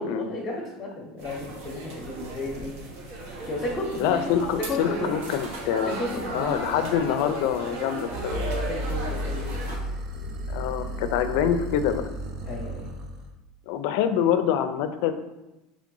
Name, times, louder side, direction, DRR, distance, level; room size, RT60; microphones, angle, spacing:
voice 1, 0.0-2.7 3.4-4.2 4.6-5.2 5.8-7.1 8.7-9.5 12.5-12.9, left 1 dB, 25° left, -2 dB, 0.7 m, -33 dB
sound 1, 1.2-9.8, right 2 dB, 80° right, 1.0 m, -36 dB
voice 2, 4.0-6.0 6.3-8.4 10.5-12.1 13.7-15.1, left 9 dB, 65° left, 9 dB, 0.4 m, -25 dB
sound 2, 8.1-13.3, equal, 40° right, 0.5 m, -33 dB
3.7 x 3.3 x 3.7 m, 0.99 s
supercardioid pair, 150°, 0 cm